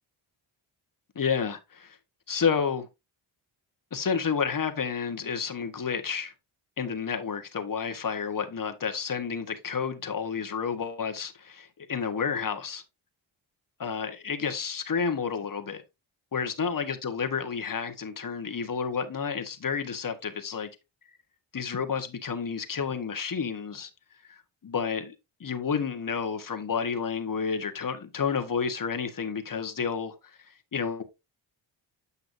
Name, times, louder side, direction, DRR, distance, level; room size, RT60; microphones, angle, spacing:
voice 1, 1.1-2.0 2.3-2.9 3.9-6.3 6.8-12.8 13.8-15.8 16.3-20.7 21.5-23.9 24.3-25.1 25.4-30.1 30.7-31.0, left 6 dB, 40° left, 1.5 m, -30 dB
8.2 x 5.7 x 2.7 m
supercardioid pair, 50°, 50 cm